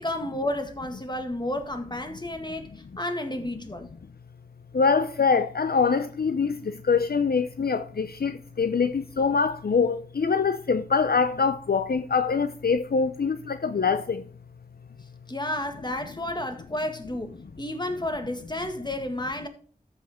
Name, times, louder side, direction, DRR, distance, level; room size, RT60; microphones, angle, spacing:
voice 1, 0.0-2.7 3.0-3.9 15.3-19.5, left 1 dB, 25° left, 1.9 m, -31 dB
voice 2, 4.7-6.6 6.9-14.2, left 5 dB, 75° left, 0.6 m, -24 dB
14.0 x 5.5 x 3.6 m
wide cardioid pair, 45°, 16 cm